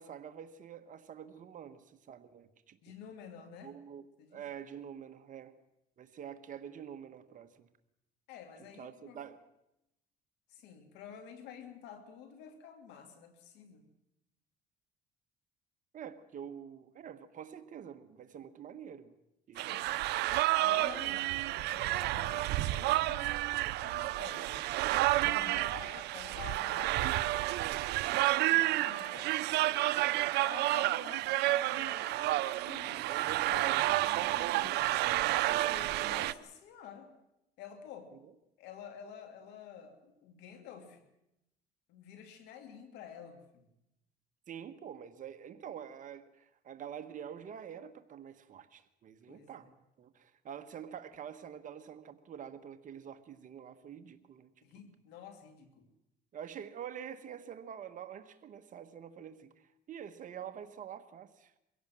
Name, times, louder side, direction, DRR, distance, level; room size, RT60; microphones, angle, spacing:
voice 1, 0.0-2.8 3.6-5.5 6.0-7.7 8.8-9.4 15.9-19.1 19.5-19.8 20.7-20.9 33.1-33.9 34.7-34.8 36.1-36.2 44.5-54.5 56.3-61.5, right 8 dB, 50° right, 9 dB, 1.3 m, -46 dB
voice 2, 2.8-3.7 4.2-4.4 8.3-9.2 10.5-13.8 19.5-20.0 20.6-23.4 23.8-24.7 25.2-27.3 27.9-29.3 30.4-33.7 34.1-34.8 35.7-37.1 37.6-38.1 38.6-41.0 41.9-43.7 49.3-49.7 54.6-55.9, left 8 dB, 90° left, 7 dB, 2.5 m, -50 dB
sound 1, 19.6-36.3, right 17 dB, 85° right, 0.7 m, -30 dB
23.5 x 16.5 x 7.6 m, 0.88 s
cardioid pair, 110°, 17 cm